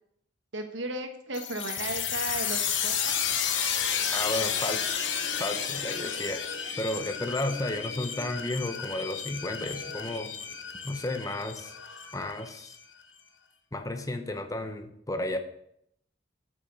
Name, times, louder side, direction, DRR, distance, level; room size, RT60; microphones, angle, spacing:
voice 1, 0.5-3.2, right 2 dB, 85° right, 6 dB, 1.4 m, -35 dB
sound 1, 1.3-12.7, left 7 dB, 90° left, 1.2 m, -32 dB
voice 2, 4.1-4.9 5.4-6.4 6.8-10.3 10.8-11.7 12.1-12.8 13.7-15.4, left 1 dB, 20° left, 8 dB, 0.8 m, -33 dB
8.4 x 6.1 x 6.8 m, 0.73 s
head